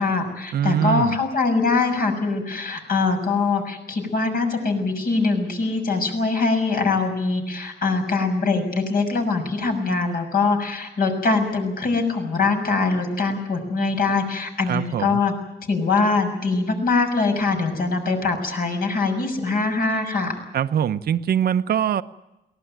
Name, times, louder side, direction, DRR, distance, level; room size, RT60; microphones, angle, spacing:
voice 1, 0.0-15.3 15.7-20.3, left 3 dB, 55° left, 5 dB, 6.4 m, -23 dB
voice 2, 0.5-1.2 14.7-15.2 20.5-22.0, right 9 dB, 60° right, 12 dB, 0.8 m, -22 dB
23.0 x 18.5 x 9.2 m, 0.95 s
cardioid pair, 130°, 18 cm